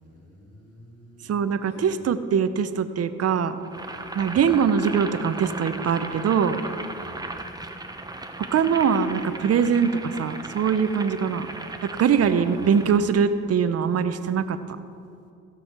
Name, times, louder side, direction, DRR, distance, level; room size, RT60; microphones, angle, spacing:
voice 1, 0.0-1.9 4.2-4.4 7.0-7.2 12.2-12.8, left 1 dB, 70° left, -4 dB, 2.9 m, -47 dB
voice 2, 1.3-3.6 4.1-6.6 8.4-11.5 11.8-14.6, right 7 dB, 50° right, 11 dB, 0.8 m, -22 dB
Boiling, 3.6-13.1, right 2 dB, 10° right, 0.9 m, -37 dB
16.0 x 6.4 x 4.4 m, 2.5 s
supercardioid pair, 65°, 32 cm